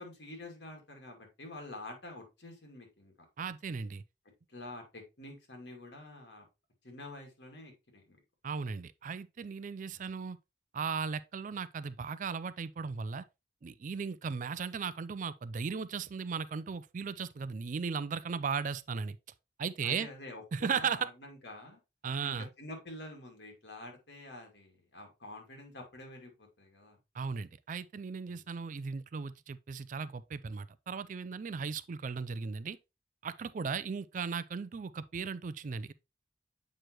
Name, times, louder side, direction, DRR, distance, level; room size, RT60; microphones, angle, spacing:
voice 1, 0.0-3.1 4.5-6.5 6.8-8.2 19.8-21.8 22.2-27.0 28.3-28.5, left 1 dB, 75° left, 2.2 m, -48 dB
voice 2, 3.4-4.0 8.4-10.4 10.7-13.2 13.6-19.2 19.6-20.1 20.5-21.1 22.0-22.5 27.1-32.8 33.2-35.9, right 5 dB, 50° right, 0.4 m, -36 dB
7.6 x 4.9 x 3.0 m
head